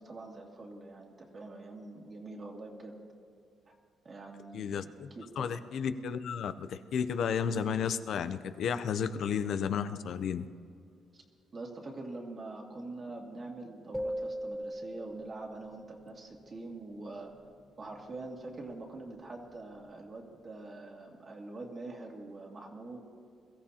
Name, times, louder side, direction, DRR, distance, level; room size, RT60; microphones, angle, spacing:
voice 1, 0.0-2.9 4.0-5.6 11.1-11.2 11.5-17.3 17.8-23.0, right 2 dB, 40° right, 0 dB, 2.2 m, -44 dB
voice 2, 4.5-5.1 5.4-10.5, left 7 dB, 70° left, 11 dB, 0.6 m, -32 dB
sound 1, 13.9-16.2, equal, ahead, 0.5 m, -39 dB
22.5 x 14.0 x 2.9 m, 2.5 s
cardioid pair, 90°, 0 cm